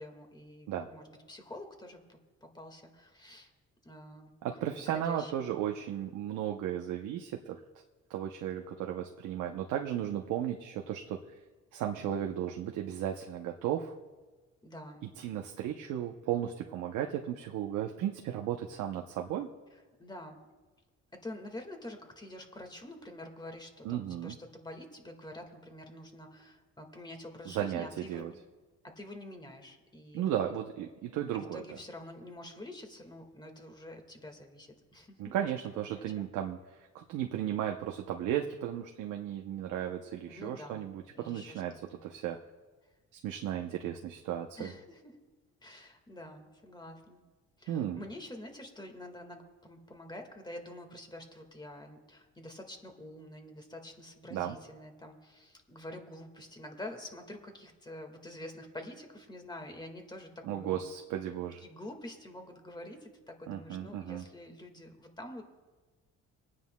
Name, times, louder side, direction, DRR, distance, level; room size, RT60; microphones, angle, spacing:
voice 1, 0.0-3.5 3.8-4.3 4.9-5.5 14.6-15.0 19.7-20.4 21.1-28.4 28.8-30.2 31.3-35.4 35.7-36.3 40.3-40.9 41.2-42.0 44.6-45.1 45.6-47.2 47.6-60.9 61.6-65.4, left 1 dB, 15° left, 4 dB, 1.7 m, -47 dB
voice 2, 4.4-7.6 8.1-11.2 11.7-13.9 15.2-19.5 23.8-24.4 27.5-28.3 30.1-31.6 35.2-42.4 43.2-44.7 47.7-48.0 54.3-54.6 60.4-61.6 63.5-64.2, right 10 dB, 90° right, 3 dB, 0.8 m, -35 dB
28.5 x 9.5 x 2.2 m, 1.3 s
cardioid pair, 90°, 30 cm